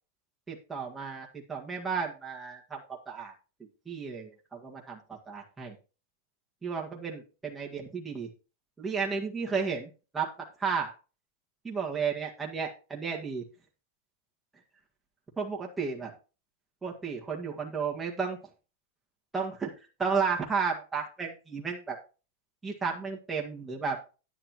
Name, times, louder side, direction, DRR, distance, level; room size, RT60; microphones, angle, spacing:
voice 1, 0.5-2.8 3.1-3.3 3.9-5.8 6.6-8.3 8.8-10.9 11.6-13.4 15.4-16.1 16.8-18.4 19.3-19.7 20.0-22.0 22.6-24.0, right 5 dB, 10° right, -2 dB, 1.8 m, -33 dB
10.0 x 9.8 x 3.0 m, 0.33 s
supercardioid pair, 145°, 0 cm